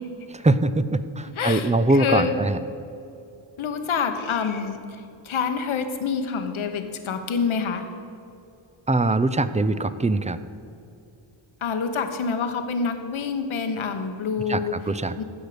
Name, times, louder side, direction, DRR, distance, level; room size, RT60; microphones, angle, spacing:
voice 1, 0.3-2.6 8.9-10.4 14.5-15.2, right 2 dB, 15° right, 13 dB, 0.5 m, -22 dB
voice 2, 1.2-1.7 2.0-2.4 3.6-7.8 11.6-14.7 15.2-15.3, left 6 dB, 75° left, 7 dB, 1.1 m, -27 dB
15.5 x 6.4 x 5.0 m, 2.6 s
cardioid pair, 60°, 49 cm